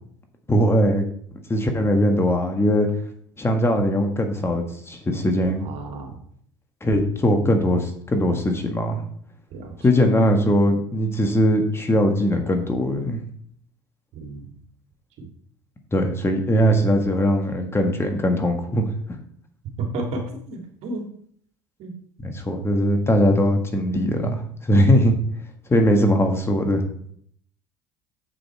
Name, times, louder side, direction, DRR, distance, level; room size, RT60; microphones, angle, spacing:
voice 1, 0.5-1.0 1.5-2.9 3.4-5.7 6.8-9.0 9.8-13.2 15.9-19.2 22.2-25.1 25.7-26.9, equal, 20° left, 4 dB, 1.5 m, -20 dB
voice 2, 5.6-6.2 9.5-9.7 14.1-14.4 15.2-15.3 19.8-21.1 21.8-21.9, right 2 dB, 60° right, 2 dB, 2.1 m, -32 dB
7.1 x 6.5 x 4.5 m, 0.63 s
hypercardioid pair, 75°, 12 cm